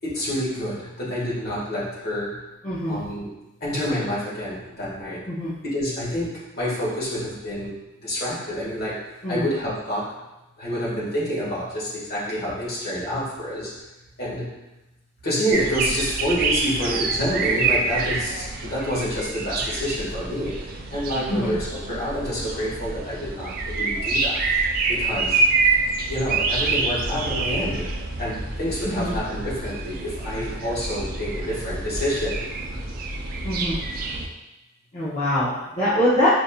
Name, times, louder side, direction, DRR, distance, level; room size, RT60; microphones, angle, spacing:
voice 1, 0.0-2.4 2.9-3.3 3.6-5.2 5.7-6.3 6.5-7.7 8.0-8.9 9.3-10.0 10.6-13.7 14.2-14.5 15.2-20.5 20.9-21.6 21.9-24.4 24.9-25.4 26.1-32.5, equal, 50° left, -8 dB, 1.4 m, -28 dB
voice 2, 2.6-3.0 5.3-5.5 9.2-9.5 21.3-21.5 28.8-29.1 33.4-33.8 34.9-36.3, left 1 dB, 35° left, -12 dB, 0.7 m, -23 dB
sound 1, 15.5-34.3, right 3 dB, 45° right, 0.3 m, -26 dB
5.1 x 2.6 x 2.3 m, 0.99 s
head